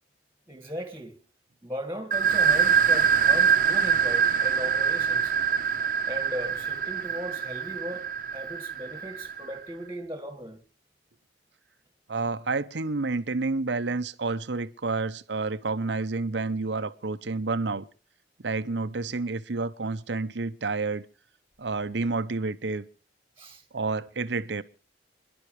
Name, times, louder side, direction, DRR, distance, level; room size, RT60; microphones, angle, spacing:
voice 1, 0.5-1.2 1.6-5.3 6.1-10.6 23.4-23.6, equal, 15° right, 1.8 m, -38 dB
sound 1, 2.1-9.6, right 7 dB, 45° right, 1.0 m, -24 dB
voice 2, 12.1-17.8 18.4-21.1 21.6-22.9 23.7-24.6, right 3 dB, 75° right, 0.8 m, -29 dB
29.0 x 11.0 x 3.2 m
head